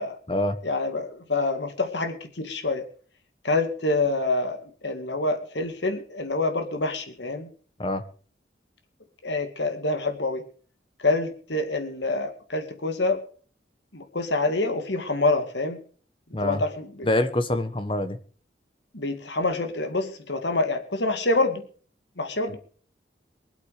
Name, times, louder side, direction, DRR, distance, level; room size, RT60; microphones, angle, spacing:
voice 1, 0.6-2.8 3.4-4.6 4.8-7.5 9.2-10.4 11.0-13.2 13.9-15.8 16.4-17.1 18.9-21.7 22.2-22.6, left 2 dB, 75° left, 7 dB, 2.2 m, -26 dB
voice 2, 17.0-18.2 22.5-22.6, left 1 dB, 30° left, 10 dB, 1.3 m, -25 dB
23.0 x 8.3 x 5.0 m, 0.42 s
head